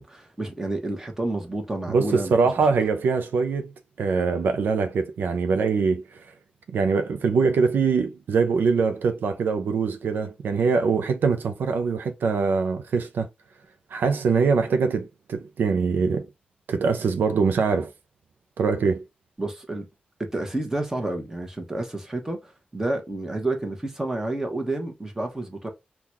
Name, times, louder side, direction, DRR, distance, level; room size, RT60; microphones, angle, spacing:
voice 1, 0.0-2.3 19.4-19.9 20.2-25.7, right 2 dB, 15° right, 0.9 m, -30 dB
voice 2, 1.9-3.7 4.0-6.0 6.7-13.3 13.9-16.3 16.7-17.9 18.6-19.0, right 5 dB, 90° right, 0.5 m, -23 dB
3.8 x 2.3 x 2.9 m
wide cardioid pair, 130°, 3 cm